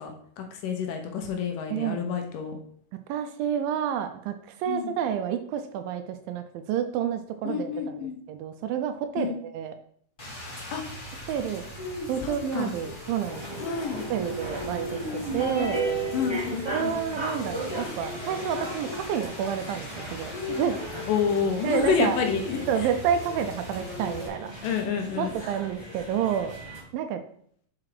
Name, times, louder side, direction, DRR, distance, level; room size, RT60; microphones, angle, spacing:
voice 1, 0.0-2.6 4.7-4.9 7.4-8.2 9.2-9.4 10.7-10.8 12.2-12.7 13.6-14.1 16.1-17.0 21.1-22.9 24.6-25.3, left 6 dB, 75° left, 4 dB, 2.2 m, -29 dB
voice 2, 3.1-9.8 11.3-11.6 12.1-13.6 14.1-15.9 16.7-20.8 21.6-22.2 22.7-24.7 25.2-26.6 26.9-27.2, right 8 dB, 80° right, 8 dB, 2.1 m, -29 dB
Rain, 10.2-24.3, left 1 dB, 40° left, 0.7 m, -38 dB
sound 1, 13.2-26.8, right 1 dB, 20° right, 0.6 m, -37 dB
5.9 x 4.8 x 4.8 m, 0.63 s
omnidirectional pair, 4.3 m